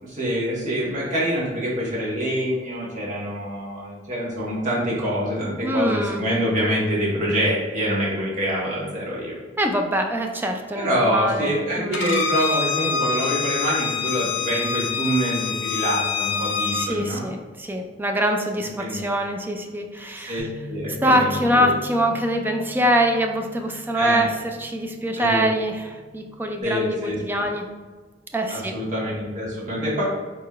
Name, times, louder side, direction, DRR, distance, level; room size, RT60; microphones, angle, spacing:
voice 1, 0.0-9.4 10.7-17.3 18.8-19.1 20.3-20.4 20.7-21.7 23.9-24.3 25.2-25.5 26.6-27.4 28.5-30.0, equal, 45° right, -6 dB, 1.5 m, -25 dB
voice 2, 5.6-6.2 9.6-11.5 11.8-12.2 16.7-20.5 21.0-25.9 26.1-27.7 28.3-28.7, equal, 10° right, 4 dB, 0.4 m, -24 dB
Bowed string instrument, 11.9-16.9, left 5 dB, 70° left, 0.5 m, -25 dB
Bass guitar, 20.4-26.6, left 1 dB, 25° left, 0.8 m, -42 dB
4.5 x 4.0 x 2.4 m, 1.4 s
head